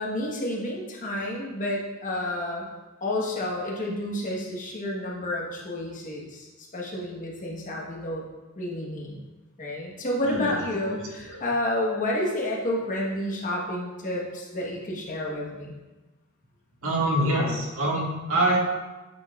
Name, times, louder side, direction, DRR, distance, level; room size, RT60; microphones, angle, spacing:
voice 1, 0.0-2.7 3.0-8.2 8.6-9.2 9.6-15.7, left 1 dB, 40° left, -2 dB, 1.1 m, -30 dB
voice 2, 10.2-10.6 10.8-11.4 16.8-18.6, right 1 dB, 65° right, -4 dB, 1.7 m, -25 dB
8.8 x 5.5 x 2.4 m, 1.1 s
head